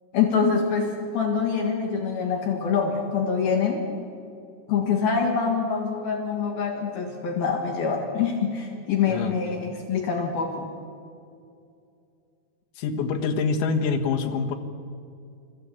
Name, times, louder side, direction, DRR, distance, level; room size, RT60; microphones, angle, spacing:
voice 1, 0.1-3.8 4.7-10.7, left 6 dB, 60° left, 2 dB, 3.3 m, -25 dB
voice 2, 9.1-9.6 12.8-14.6, left 5 dB, 90° left, 3 dB, 3.9 m, -26 dB
30.0 x 14.5 x 8.3 m, 2.5 s
omnidirectional pair, 5.2 m